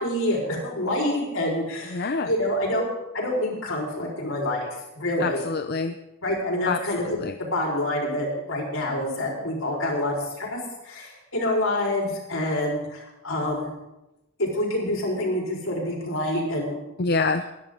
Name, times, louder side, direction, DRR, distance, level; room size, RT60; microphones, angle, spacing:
voice 1, 0.0-2.9 3.1-4.7 4.9-5.4 6.2-10.6 10.8-13.7 14.4-16.8, left 1 dB, 70° left, -2 dB, 4.3 m, -27 dB
voice 2, 1.9-2.3 5.2-6.0 6.7-7.3 17.0-17.5, left 4 dB, 50° left, 8 dB, 0.6 m, -26 dB
22.0 x 10.5 x 3.8 m, 0.95 s
head